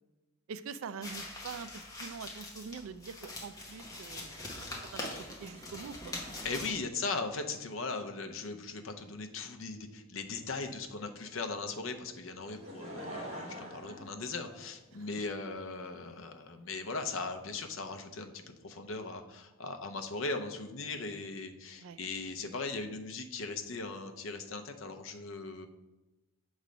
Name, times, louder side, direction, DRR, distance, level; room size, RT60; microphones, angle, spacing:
voice 1, 0.5-1.7 2.0-4.3 4.9-6.1 14.9-15.1 21.8-22.0, right 6 dB, 70° right, 13 dB, 0.3 m, -44 dB
sound 1, 1.0-6.7, left 2 dB, 15° left, 0.8 m, -43 dB
voice 2, 6.4-25.7, left 3 dB, 65° left, 6 dB, 0.6 m, -39 dB
Laughter / Crowd, 12.4-15.1 15.8-15.9, equal, 30° right, 1.0 m, -44 dB
6.6 x 3.2 x 5.0 m, 1.1 s
head